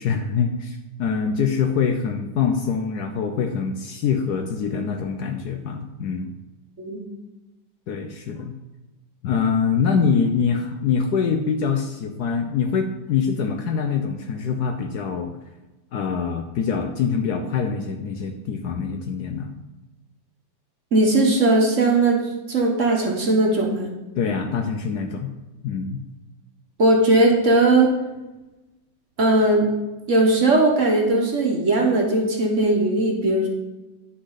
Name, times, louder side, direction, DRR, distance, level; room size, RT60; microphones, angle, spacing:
voice 1, 0.0-6.3 7.9-8.6 9.2-15.3 15.9-19.5 24.2-25.3 25.6-26.0, left 6 dB, 65° left, 5 dB, 1.1 m, -24 dB
voice 2, 20.9-22.2 22.5-23.9 26.8-27.9 29.2-29.7 30.1-33.5, right 2 dB, 45° right, 0 dB, 1.4 m, -18 dB
9.8 x 6.2 x 3.9 m, 1.1 s
omnidirectional pair, 2.1 m